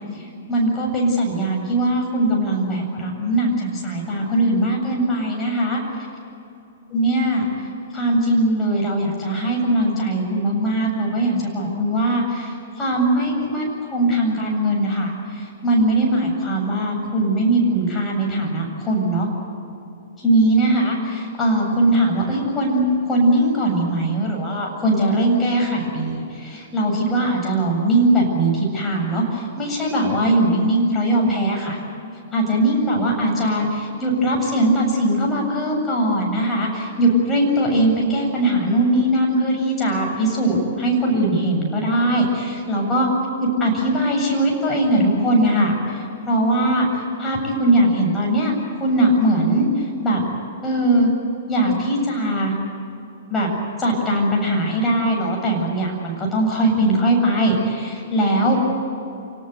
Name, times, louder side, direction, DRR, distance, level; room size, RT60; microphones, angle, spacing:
voice 1, 0.5-5.8 6.9-7.4 7.9-19.3 20.2-22.8 23.1-31.8 32.3-43.1 43.4-46.9 47.2-49.7 50.0-50.2 50.6-51.1 51.5-52.5 53.3-53.5 53.8-58.6, right 1 dB, 15° left, -1 dB, 7.7 m, -20 dB
28.0 x 19.0 x 8.3 m, 2.8 s
figure-of-eight pair, 110°, 0 cm